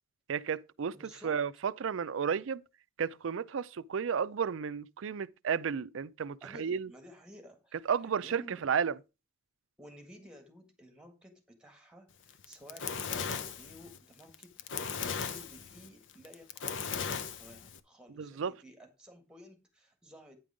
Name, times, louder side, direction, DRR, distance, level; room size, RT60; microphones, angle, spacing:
voice 1, 0.3-1.0 1.2-2.6 3.0-6.9 7.9-9.0 18.2-18.5, right 7 dB, 70° right, 0.4 m, -32 dB
voice 2, 0.9-1.4 6.4-7.8 8.2-8.7 9.8-14.5 14.9-20.4, equal, 5° right, 1.7 m, -54 dB
Fire, 12.3-17.8, left 6 dB, 60° left, 0.7 m, -37 dB
9.5 x 5.3 x 4.9 m
head